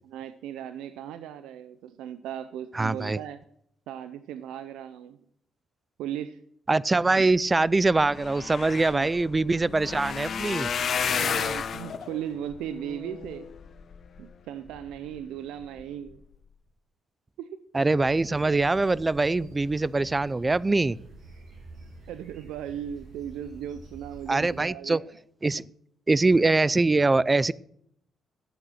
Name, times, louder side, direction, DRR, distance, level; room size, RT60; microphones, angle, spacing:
voice 1, 0.1-3.4 3.9-5.2 6.0-6.4 7.2-7.3 8.9-9.1 11.1-13.5 14.2-16.2 17.4-17.6 22.1-25.1, right 10 dB, 90° right, 12 dB, 0.6 m, -37 dB
voice 2, 2.7-3.2 6.7-10.7 17.7-21.0 24.3-25.0 25.4-25.6 26.1-27.5, right 3 dB, 20° right, 22 dB, 0.4 m, -23 dB
sound 1, 7.5-7.6 7.8-14.2 14.7-15.2 15.6-15.8 16.1-16.2, left 7 dB, 55° left, 1.3 m, -32 dB
sound 2, 18.0-24.6, right 2 dB, 50° right, 6.9 m, -48 dB
12.0 x 8.8 x 6.4 m, 0.69 s
cardioid pair, 90°, 0 cm